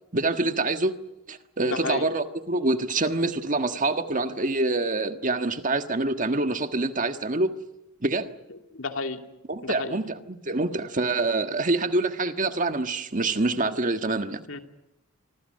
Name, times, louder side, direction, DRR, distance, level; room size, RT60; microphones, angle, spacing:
voice 1, 0.1-0.9 1.3-7.5 8.0-8.3 9.5-14.4, right 2 dB, 35° right, 1.5 m, -26 dB
voice 2, 1.6-2.1 8.5-9.2 9.6-10.0 14.5-14.6, left 3 dB, 60° left, 2.5 m, -32 dB
26.0 x 25.0 x 6.6 m
head